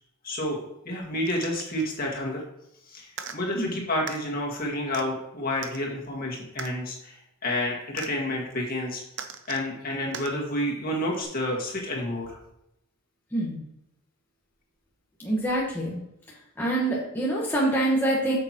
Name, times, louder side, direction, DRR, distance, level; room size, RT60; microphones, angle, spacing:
voice 1, 0.2-2.4 2.9-9.0 9.5-12.4, left 1 dB, 45° left, -2 dB, 2.0 m, -30 dB
sound 1, 1.3-1.9 3.1-3.4 4.1-4.2 4.9-5.0 5.6-5.8 6.6-6.7 8.0-8.1 9.1-9.7 10.1-10.3 11.2-11.3, right 7 dB, 55° right, 0.7 m, -38 dB
voice 2, 13.3-13.6 15.2-16.0 16.3-18.4, right 1 dB, 10° left, -5 dB, 1.3 m, -26 dB
8.8 x 6.8 x 3.0 m, 0.82 s
head